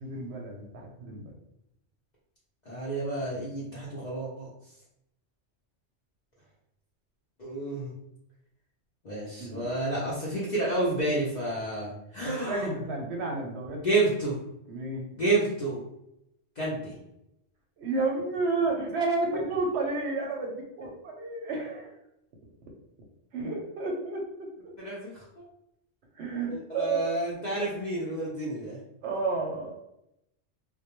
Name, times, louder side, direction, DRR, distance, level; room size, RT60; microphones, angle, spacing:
voice 1, 0.0-1.3 9.4-9.7 12.2-13.8 14.7-15.1 17.8-21.9 23.3-24.7 26.2-27.0 29.0-29.7, right 3 dB, 70° right, 0 dB, 0.8 m, -31 dB
voice 2, 2.7-4.5 7.4-8.0 9.0-12.7 13.8-14.4 15.1-15.8 16.6-16.9 24.8-25.5 26.5-28.8, right 2 dB, 50° left, -6 dB, 0.5 m, -30 dB
2.1 x 2.1 x 2.9 m, 0.81 s
omnidirectional pair, 1.3 m